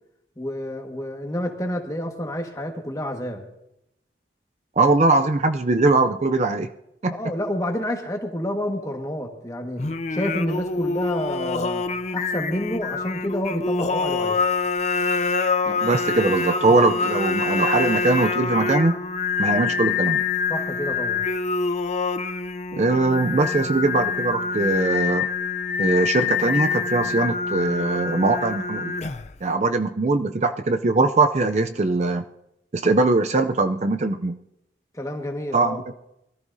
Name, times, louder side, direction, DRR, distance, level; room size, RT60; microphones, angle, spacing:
voice 1, 0.4-3.4 7.1-9.8 10.1-11.9 12.1-14.4 20.5-21.2 34.9-35.8, left 1 dB, 20° left, 3 dB, 1.5 m, -29 dB
voice 2, 4.8-6.7 7.0-7.1 15.7-19.0 19.4-20.2 22.7-25.3 25.8-29.0 29.4-32.2 32.7-34.4 35.5-35.8, right 3 dB, 40° right, 8 dB, 0.5 m, -21 dB
Singing, 9.8-29.4, left 4 dB, 40° left, 0.5 m, -26 dB
23.0 x 14.0 x 2.7 m, 0.83 s
head